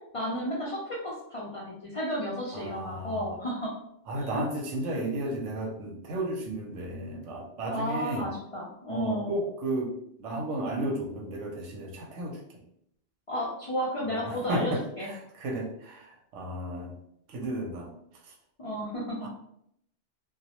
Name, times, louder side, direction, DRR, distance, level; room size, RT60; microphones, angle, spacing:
voice 1, 0.1-3.7 4.3-4.5 7.7-9.3 13.3-15.1 18.6-19.3, equal, 55° left, -6 dB, 0.3 m, -33 dB
voice 2, 2.5-3.2 4.1-8.3 8.9-9.9 10.2-12.4 14.1-16.9 17.3-17.9 19.2-19.3, right 1 dB, 80° right, 0 dB, 0.9 m, -33 dB
2.2 x 2.0 x 2.8 m, 0.73 s
omnidirectional pair, 1.2 m